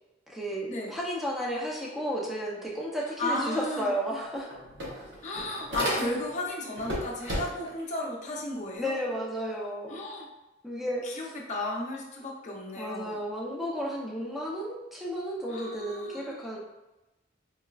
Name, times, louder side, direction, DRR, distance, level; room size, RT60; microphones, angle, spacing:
voice 1, 0.3-4.5 8.8-10.0 10.6-11.3 12.8-16.6, equal, ahead, -4 dB, 0.6 m, -33 dB
voice 2, 3.2-3.9 5.2-9.0 9.9-10.3 10.8-13.2 15.5-16.5, left 1 dB, 40° left, -1 dB, 0.6 m, -34 dB
sound 1, 3.8-3.9 4.2-6.4 6.8-7.8, equal, 70° right, 0.9 m, -34 dB
4.6 x 2.1 x 2.4 m, 1.0 s
head